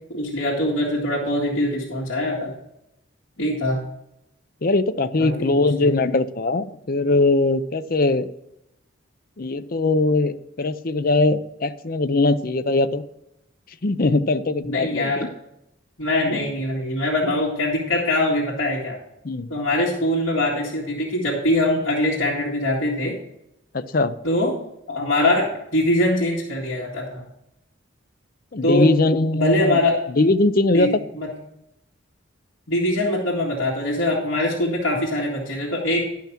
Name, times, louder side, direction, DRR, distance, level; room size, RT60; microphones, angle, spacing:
voice 1, 0.0-2.5 3.4-3.8 5.2-5.9 14.6-15.3 16.0-19.0 19.5-23.2 24.2-24.5 24.9-27.2 28.6-28.9 29.3-30.0 30.7-31.3 32.7-36.1, left 1 dB, 85° left, -6 dB, 2.1 m, -23 dB
voice 2, 4.6-8.3 9.4-13.0 13.8-15.3 19.2-19.5 23.7-24.2 28.5-29.8 30.1-30.9, left 2 dB, 45° left, 11 dB, 0.6 m, -21 dB
11.5 x 5.8 x 5.9 m, 0.82 s
head